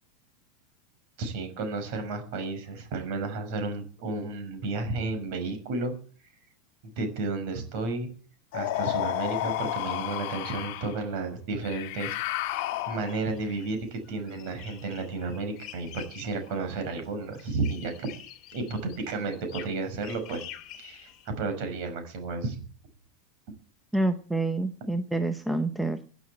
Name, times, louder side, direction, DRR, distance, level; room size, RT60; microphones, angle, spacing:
voice 1, 1.2-5.9 7.0-8.1 8.5-12.5 12.9-18.1 18.5-20.4 20.7-21.1 21.4-22.6, right 3 dB, 45° right, 7 dB, 6.0 m, -32 dB
sound 1, 8.5-11.0 11.6-13.3, left 14 dB, 45° left, 1.6 m, -31 dB
sound 2, 11.9-21.3, left 11 dB, 30° left, 2.5 m, -48 dB
voice 2, 23.9-26.0, right 2 dB, ahead, 9 dB, 0.7 m, -27 dB
16.0 x 9.3 x 8.7 m, 0.42 s
supercardioid pair, 175°, 0 cm